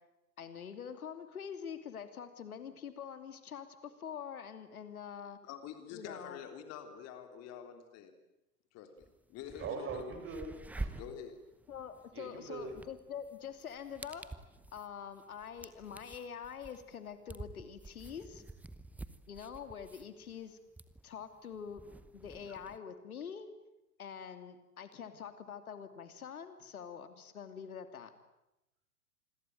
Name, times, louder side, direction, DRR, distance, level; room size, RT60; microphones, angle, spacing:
voice 1, 0.4-5.4 5.9-6.4 11.7-14.2 14.7-18.4 19.3-20.6 21.0-21.8 22.1-23.5 24.0-28.1, left 7 dB, 65° left, 9 dB, 3.0 m, -45 dB
voice 2, 5.4-8.1 8.7-10.1 10.9-11.4, left 8 dB, 35° left, 7 dB, 3.4 m, -47 dB
sound 1, 9.0-9.1 9.4-22.8, right 2 dB, 5° right, 0.9 m, -48 dB
voice 3, 9.6-10.9 12.1-12.7, right 5 dB, 25° right, 7 dB, 6.3 m, -41 dB
27.0 x 22.0 x 9.2 m, 0.92 s
figure-of-eight pair, 105°, 46 cm